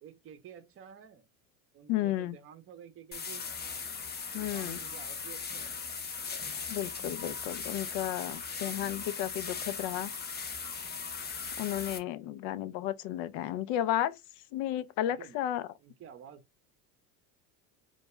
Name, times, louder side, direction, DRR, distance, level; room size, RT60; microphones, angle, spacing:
voice 1, 0.0-1.3 1.7-3.4 4.3-5.8 12.2-12.5 15.2-15.4 15.8-16.4, right 8 dB, 35° right, 0.6 m, -51 dB
voice 2, 1.9-2.4 4.3-4.8 6.7-10.1 11.6-14.2 14.5-15.7, left 12 dB, 75° left, 0.5 m, -33 dB
sound 1, 3.1-12.0, left 5 dB, 25° left, 0.6 m, -38 dB
2.3 x 2.2 x 2.9 m
supercardioid pair, 105°, 41 cm